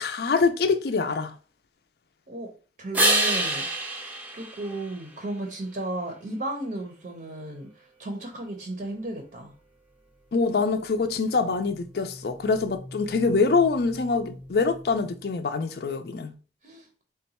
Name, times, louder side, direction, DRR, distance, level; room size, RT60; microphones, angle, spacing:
voice 1, 0.0-1.3 10.3-16.3, left 4 dB, 60° left, 0.4 m, -24 dB
voice 2, 2.8-3.7 4.3-7.7 8.0-9.5 16.6-16.8, right 2 dB, 50° right, 0.6 m, -34 dB
sound 1, 2.9-5.5 11.3-15.2, right 1 dB, 10° right, 0.5 m, -30 dB
3.8 x 2.2 x 4.1 m
head